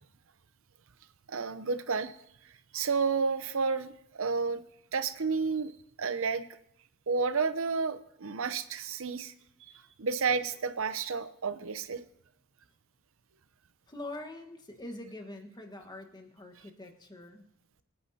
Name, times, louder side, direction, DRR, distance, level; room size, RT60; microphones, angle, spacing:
voice 1, 1.3-2.1 2.7-4.6 4.9-5.7 6.0-6.5 7.1-9.3 9.6-9.7 10.0-12.0, right 5 dB, 65° right, 12 dB, 0.8 m, -31 dB
voice 2, 13.9-17.5, left 2 dB, 20° left, 3 dB, 1.4 m, -44 dB
25.0 x 9.5 x 2.8 m, 0.74 s
head